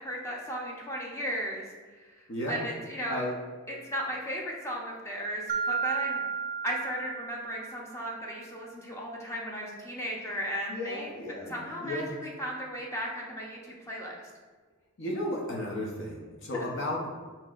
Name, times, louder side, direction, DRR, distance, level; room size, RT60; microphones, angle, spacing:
voice 1, 0.0-1.6 1.9-3.3 3.7-6.2 6.6-11.1 11.5-14.3, equal, 15° left, -3 dB, 0.7 m, -36 dB
voice 2, 2.3-2.6 3.1-3.3 10.7-12.1 15.0-17.1, left 1 dB, 55° left, -2 dB, 0.8 m, -34 dB
Mallet percussion, 5.5-8.1, right 5 dB, 35° right, 0.3 m, -33 dB
7.4 x 2.8 x 2.4 m, 1.4 s
head